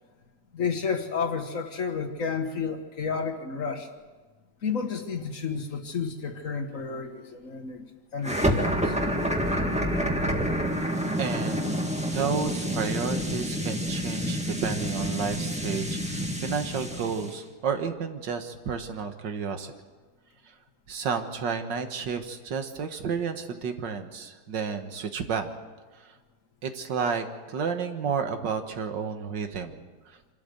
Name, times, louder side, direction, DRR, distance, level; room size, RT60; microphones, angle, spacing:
voice 1, 0.5-3.9 4.6-7.9 8.1-9.0, left 5 dB, 50° left, 6 dB, 1.7 m, -31 dB
sound 1, 8.2-17.4, equal, 5° right, 1.5 m, -28 dB
voice 2, 11.2-11.8 12.1-19.7 20.9-25.5 26.0-26.1 26.6-29.8, right 6 dB, 85° right, 7 dB, 2.1 m, -31 dB
26.0 x 13.0 x 7.9 m, 1.3 s
omnidirectional pair, 1.9 m